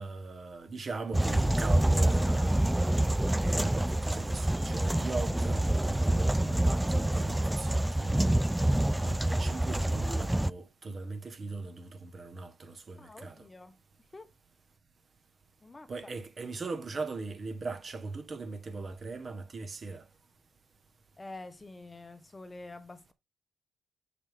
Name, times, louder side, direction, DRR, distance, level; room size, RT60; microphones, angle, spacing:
voice 1, 0.0-8.3 9.0-13.5 15.9-20.1, right 3 dB, 40° right, 1.6 m, -39 dB
sound 1, 1.1-10.5, right 1 dB, 5° right, 0.3 m, -27 dB
voice 2, 13.0-13.8 14.1-14.3 15.6-15.9 21.2-23.1, left 2 dB, 20° left, 1.0 m, -47 dB
6.5 x 6.1 x 3.7 m
cardioid pair, 90°, 0 cm